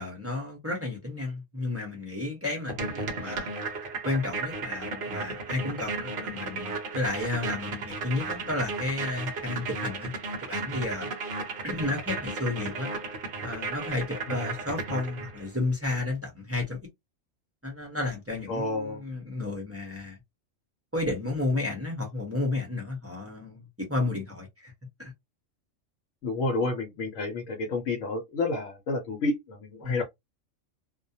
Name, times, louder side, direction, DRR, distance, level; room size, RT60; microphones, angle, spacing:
voice 1, 0.0-3.7 4.0-10.1 10.5-11.1 11.6-12.9 13.4-16.8 17.6-20.2 20.9-24.7 25.0-25.1 29.8-30.0, left 2 dB, 15° right, 0.6 m, -32 dB
sound 1, 2.7-15.5, right 3 dB, 55° right, 0.7 m, -35 dB
voice 2, 18.5-19.0 26.2-30.0, left 2 dB, 75° left, 1.0 m, -30 dB
2.3 x 2.2 x 2.6 m
omnidirectional pair, 1.3 m